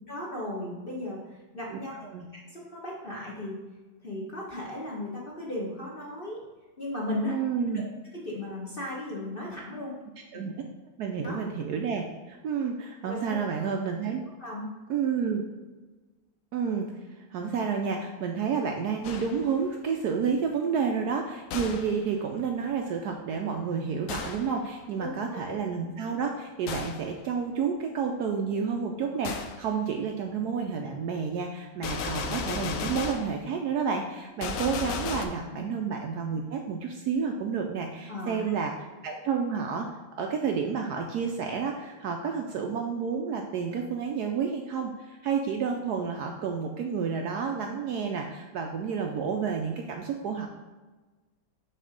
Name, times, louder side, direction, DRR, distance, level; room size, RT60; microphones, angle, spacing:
voice 1, 0.1-1.9 2.3-3.6 4.0-6.4 6.8-7.4 7.7-7.8 8.1-9.9 10.3-10.5 11.2-11.4 13.0-13.4 14.4-14.7 25.0-25.5 35.5-35.6 38.1-38.4, left 1 dB, 40° left, -3 dB, 0.9 m, -36 dB
voice 2, 7.2-7.8 10.3-10.5 11.0-14.2 14.9-15.4 16.5-16.9 17.3-38.7 39.0-39.9 40.2-50.5, right 6 dB, 70° right, 3 dB, 1.0 m, -30 dB
Gunshot gunfire, 19.0-19.6 21.5-22.0 24.1-24.6 26.7-27.1 29.2-29.6 31.8-33.4 34.4-35.3, left 5 dB, 75° left, 0.7 m, -34 dB
6.4 x 3.3 x 5.1 m, 1.2 s
omnidirectional pair, 2.1 m